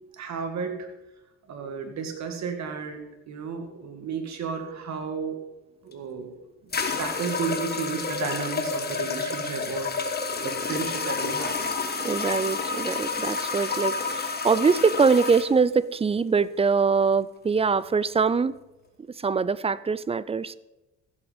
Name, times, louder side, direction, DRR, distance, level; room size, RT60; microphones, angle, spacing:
voice 1, 0.2-0.9 1.5-5.4 5.8-6.3 6.6-6.7 7.0-11.6, right 5 dB, 65° right, 5 dB, 2.0 m, -33 dB
sound 1, 5.9-6.0 6.7-15.5, left 4 dB, 30° left, 1.4 m, -29 dB
voice 2, 12.0-18.6 19.2-20.6, right 5 dB, 20° right, 19 dB, 0.4 m, -23 dB
14.5 x 7.9 x 5.1 m, 1.0 s
cardioid pair, 90°, 30 cm